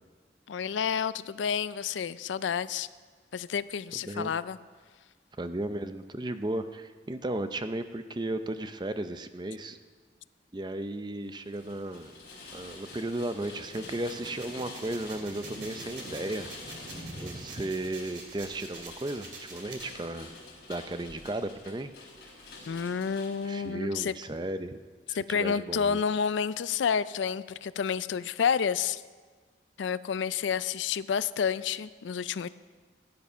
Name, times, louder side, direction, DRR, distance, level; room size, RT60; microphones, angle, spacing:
voice 1, 0.5-2.9 3.3-4.6 22.7-24.1 25.1-29.0 29.8-32.5, left 7 dB, 90° left, 16 dB, 0.4 m, -29 dB
voice 2, 5.4-9.8 10.5-12.1 12.5-16.5 17.2-20.3 20.7-21.9 23.4-24.8 25.1-26.0, right 1 dB, 25° right, 10 dB, 0.5 m, -35 dB
Rain, 11.3-23.7, left 3 dB, 60° left, 4.2 m, -48 dB
Thunder / Rain, 11.6-17.9, right 1 dB, 40° right, 1.9 m, -48 dB
sound 1, 13.6-19.9, right 4 dB, 80° right, 2.3 m, -47 dB
15.5 x 9.6 x 5.5 m, 1.5 s
head